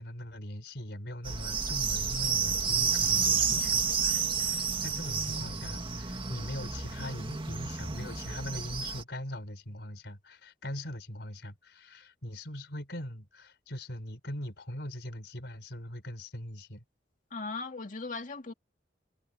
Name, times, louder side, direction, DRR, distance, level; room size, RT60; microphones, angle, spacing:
voice 1, 0.0-16.8, left 1 dB, 70° left, 5.0 m, -41 dB
sound 1, 1.2-9.0, right 5 dB, 30° right, 2.1 m, -30 dB
voice 2, 17.3-18.5, left 3 dB, 50° left, 2.3 m, -38 dB
head